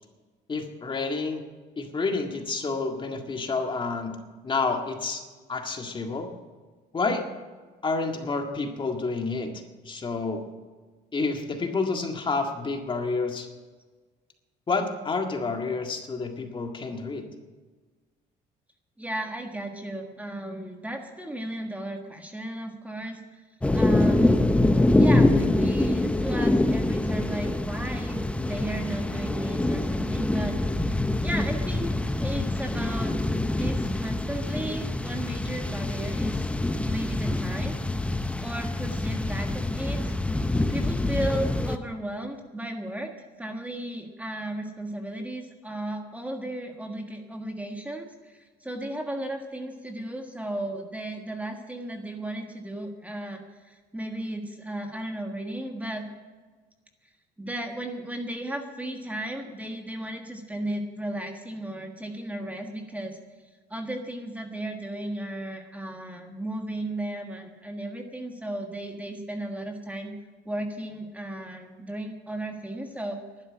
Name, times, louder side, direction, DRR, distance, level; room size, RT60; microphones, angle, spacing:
voice 1, 0.5-1.4 1.8-4.2 4.4-5.2 5.5-6.3 6.9-7.2 7.8-9.5 9.8-10.4 11.1-13.5 14.7-17.2, left 4 dB, 30° left, 4 dB, 1.9 m, -29 dB
voice 2, 19.0-23.2 23.7-24.5 25.0-30.9 31.2-33.2 33.5-36.5 36.8-37.8 38.4-40.2 40.7-43.1 43.4-56.1 57.4-63.2 63.7-70.1 70.4-73.2, right 1 dB, 10° right, 3 dB, 1.6 m, -35 dB
sound 1, 23.6-41.8, left 2 dB, 5° left, 0.7 m, -25 dB
12.0 x 10.0 x 8.6 m, 1.4 s
cardioid pair, 110°, 17 cm